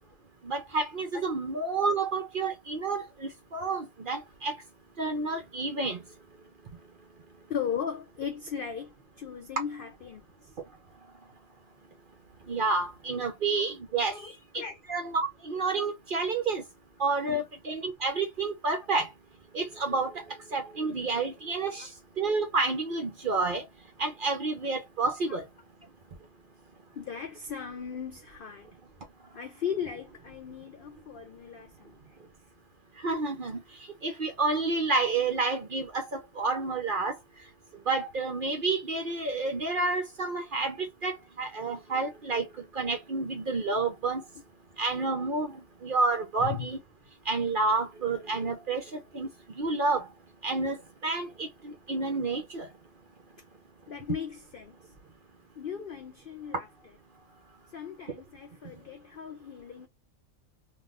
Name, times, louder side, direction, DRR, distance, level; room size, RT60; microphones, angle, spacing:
voice 1, 0.4-4.6 5.0-6.0 12.5-14.1 14.9-16.6 17.0-19.1 19.5-20.2 20.5-21.9 22.2-23.6 24.0-25.4 33.0-33.6 34.0-37.2 37.9-42.5 42.7-44.2 44.8-45.6 45.8-46.8 47.3-49.3 49.6-50.1 50.4-50.8 51.0-52.7, right 3 dB, 50° right, 0.7 m, -29 dB
voice 2, 7.5-10.5 14.0-14.8 17.2-17.4 21.8-21.9 25.3-25.4 26.9-28.7 29.3-32.0 46.4-46.7 53.9-54.8 55.6-56.7 57.7-59.9, left 7 dB, 70° left, 0.5 m, -37 dB
3.6 x 2.4 x 2.4 m
omnidirectional pair, 1.5 m